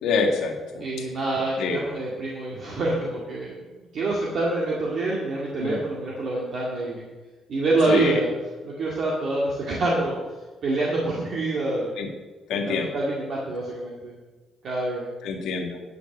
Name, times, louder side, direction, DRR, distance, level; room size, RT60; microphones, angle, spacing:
voice 1, 0.0-0.8 1.6-1.8 5.6-5.8 7.9-8.2 12.0-12.1 12.5-12.9 15.2-15.8, left 4 dB, 80° left, 2 dB, 1.9 m, -26 dB
voice 2, 0.8-7.0 7.5-8.3 8.6-10.2 10.6-11.9 12.7-14.1 14.6-15.1, right 2 dB, 50° right, -4 dB, 2.1 m, -26 dB
10.5 x 6.0 x 7.9 m, 1.3 s
cardioid pair, 145°, 0 cm